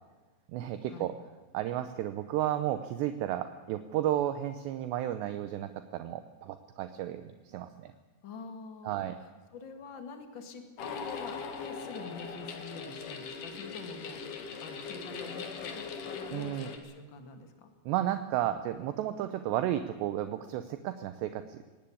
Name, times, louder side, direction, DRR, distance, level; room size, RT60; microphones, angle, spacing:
voice 1, 0.5-1.1 1.5-7.9 8.8-9.2 16.3-16.7 17.9-21.6, right 12 dB, 80° right, 10 dB, 2.5 m, -33 dB
voice 2, 8.2-17.7, left 4 dB, 70° left, 6 dB, 1.1 m, -46 dB
sound 1, 10.8-16.8, left 5 dB, 55° left, 2.7 m, -40 dB
21.5 x 18.0 x 8.6 m, 1.4 s
omnidirectional pair, 5.9 m